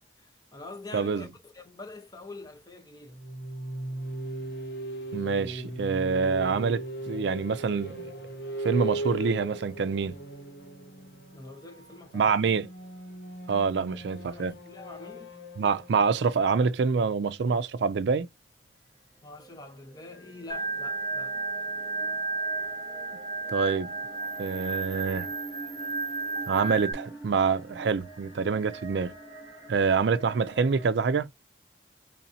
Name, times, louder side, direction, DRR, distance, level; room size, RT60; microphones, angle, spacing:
voice 1, 0.2-3.2 11.3-12.4 13.8-13.9 14.2-15.3 19.2-21.4, left 3 dB, 20° left, 0.8 m, -45 dB
voice 2, 0.9-1.3 5.1-8.1 8.6-10.1 12.1-12.7 13.5-14.6 15.6-18.3 23.5-23.9 24.4-25.3 26.5-29.1 29.7-31.3, right 5 dB, 75° right, 0.4 m, -26 dB
sound 1, 3.1-17.7, right 2 dB, 70° left, 1.6 m, -38 dB
sound 2, 18.3-30.9, right 2 dB, 15° right, 1.9 m, -46 dB
Organ, 20.5-26.9, right 4 dB, 40° right, 0.9 m, -33 dB
4.2 x 3.1 x 2.7 m
head